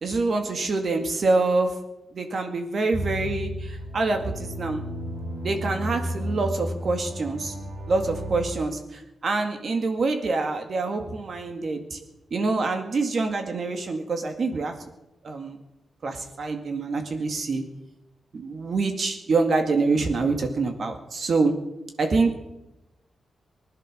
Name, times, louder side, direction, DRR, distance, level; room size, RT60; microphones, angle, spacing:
voice 1, 0.0-1.7 2.1-4.8 5.4-7.5 7.9-12.0 12.3-14.7 15.2-15.6 16.0-17.6 18.3-21.5 22.0-22.3, right 3 dB, 50° right, 5 dB, 2.1 m, -26 dB
sound 1, 2.9-8.4, equal, 80° right, 5.3 m, -33 dB
20.0 x 11.0 x 6.7 m, 0.92 s
wide cardioid pair, 145°, 0 cm